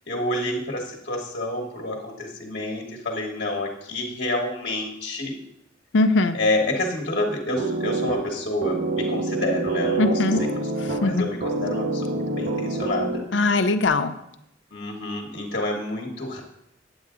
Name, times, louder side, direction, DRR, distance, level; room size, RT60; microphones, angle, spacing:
voice 1, 0.1-5.3 6.3-10.2 10.8-13.2 14.7-16.4, left 1 dB, 55° left, -1 dB, 1.3 m, -28 dB
voice 2, 5.9-6.4 10.0-10.4 10.8-11.3 13.3-14.1, left 2 dB, 70° left, 9 dB, 0.6 m, -21 dB
sound 1, 7.6-13.5, right 2 dB, 50° right, 0.9 m, -27 dB
8.8 x 8.0 x 3.7 m, 0.79 s
head